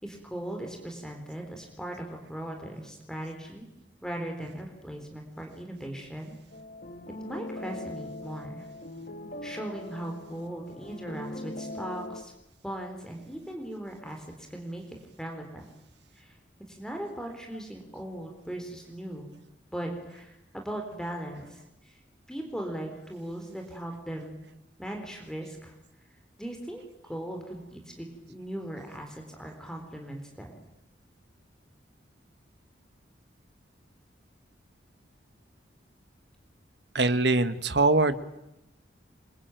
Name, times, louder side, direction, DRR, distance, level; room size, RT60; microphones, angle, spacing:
voice 1, 0.0-3.7 4.0-6.4 7.2-8.7 9.4-12.3 12.6-15.6 16.2-16.4 16.7-19.3 19.7-22.0 22.3-24.4 24.8-25.7 26.4-26.8 27.1-30.6, right 1 dB, 5° left, 2 dB, 4.0 m, -38 dB
sound 1, 6.5-12.2, left 1 dB, 50° left, 1.9 m, -41 dB
voice 2, 36.9-38.2, right 2 dB, 65° right, 11 dB, 1.6 m, -22 dB
27.0 x 23.5 x 9.2 m, 0.87 s
head